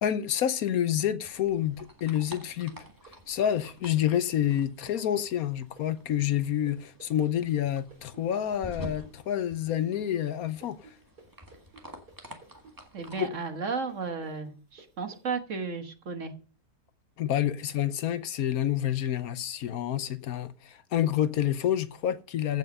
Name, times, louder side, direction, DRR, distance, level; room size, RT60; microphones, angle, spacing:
voice 1, 0.0-2.7 3.3-10.8 13.2-13.3 17.2-22.6, left 10 dB, 70° left, 1.2 m, -28 dB
sound 1, 1.2-13.2, equal, 15° right, 1.6 m, -49 dB
sound 2, 2.7-10.4 10.6-15.2, right 3 dB, 90° right, 4.5 m, -54 dB
voice 2, 12.9-16.3, right 5 dB, 55° right, 1.6 m, -34 dB
15.5 x 5.7 x 5.3 m
omnidirectional pair, 1.6 m